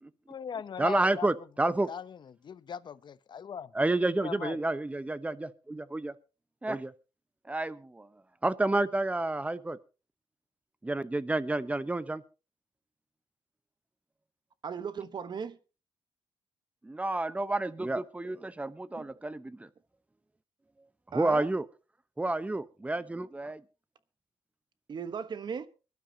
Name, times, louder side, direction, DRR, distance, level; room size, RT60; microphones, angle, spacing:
voice 1, 0.3-1.3 1.6-3.7 4.2-4.6, left 7 dB, 50° left, 0.7 m, -39 dB
voice 2, 0.8-1.9 3.7-6.1 6.6-6.9 7.5-8.1 8.4-9.8 10.8-12.2 16.8-19.7 21.1-21.6 22.2-23.6, right 2 dB, 15° right, 0.9 m, -30 dB
voice 3, 14.6-15.6 19.0-19.1 21.1-21.5 24.9-25.7, right 6 dB, 50° right, 1.1 m, -37 dB
23.5 x 12.0 x 2.8 m
cardioid pair, 90°, 10 cm